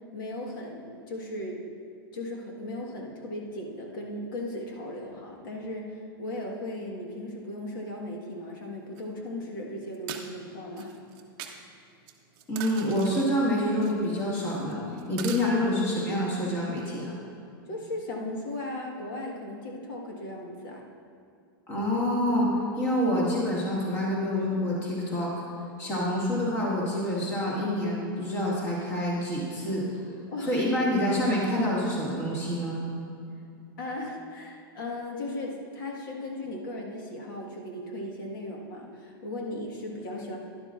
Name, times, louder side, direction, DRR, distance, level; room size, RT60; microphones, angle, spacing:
voice 1, 0.1-1.6 2.1-10.9 11.4-11.6 17.7-20.8 30.3-30.6 33.8-40.4, left 1 dB, 60° left, 0 dB, 1.6 m, -37 dB
sound 1, 9.0-9.1 9.9-10.2 10.8-11.6 12.1-13.3 13.8-14.0 14.4-14.7 15.0-15.5, right 9 dB, 30° right, 0.7 m, -40 dB
voice 2, 12.5-17.1 21.7-25.3 25.8-30.0 30.4-32.8, left 1 dB, 20° left, -5 dB, 2.0 m, -27 dB
11.5 x 11.0 x 2.5 m, 2.5 s
supercardioid pair, 170°, 12 cm